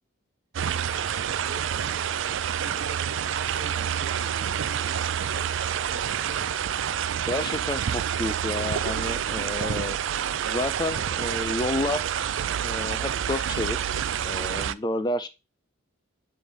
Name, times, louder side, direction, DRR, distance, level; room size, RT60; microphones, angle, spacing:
sound 1, 0.5-14.7, right 9 dB, 65° right, 0.4 m, -28 dB
voice 1, 0.9-6.5, right 2 dB, 45° right, 1.3 m, -45 dB
voice 2, 7.3-10.0 10.5-12.0 12.6-13.8 14.2-15.3, left 2 dB, 20° left, 0.4 m, -30 dB
7.6 x 3.3 x 6.1 m
head